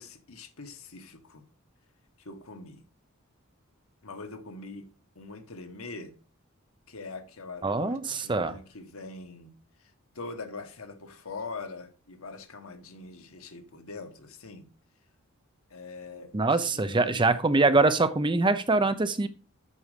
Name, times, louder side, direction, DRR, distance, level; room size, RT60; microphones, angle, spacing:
voice 1, 0.0-1.4 2.2-2.8 4.0-4.9 5.1-6.1 6.9-9.5 9.8-14.7 15.7-17.4, left 3 dB, 85° left, 1.4 m, -43 dB
voice 2, 7.6-8.6 16.3-19.3, right 3 dB, 20° right, 0.6 m, -24 dB
8.2 x 6.3 x 5.0 m
head